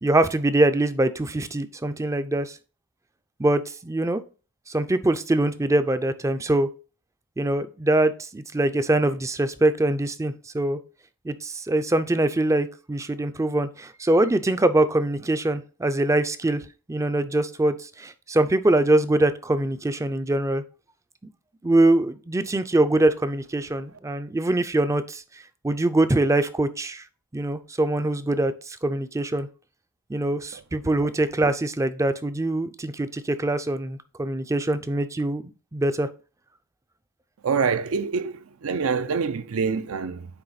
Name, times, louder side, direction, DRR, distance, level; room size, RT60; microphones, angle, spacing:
voice 1, 0.0-2.6 3.4-4.2 4.7-6.7 7.4-10.8 11.2-16.6 16.9-20.6 21.6-25.2 25.6-27.0 27.3-29.5 30.1-36.1, right 1 dB, 15° right, 0.4 m, -23 dB
voice 2, 37.4-40.3, right 5 dB, 75° right, 0.5 m, -26 dB
9.0 x 3.4 x 4.0 m
head